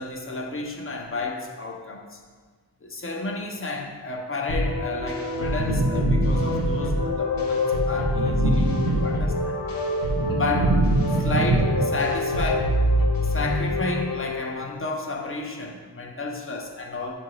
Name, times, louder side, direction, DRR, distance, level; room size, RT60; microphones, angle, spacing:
voice 1, 0.0-2.2 2.8-9.6 10.3-10.8 11.2-12.7 13.2-17.1, left 2 dB, 30° left, 2 dB, 0.7 m, -31 dB
sound 1, 4.5-14.6, left 1 dB, 55° left, 0.9 m, -25 dB
sound 2, 5.5-7.0 8.0-9.5 9.9-12.3, right 3 dB, 50° right, 0.5 m, -26 dB
7.5 x 2.7 x 4.7 m, 1.5 s
wide cardioid pair, 135°, 41 cm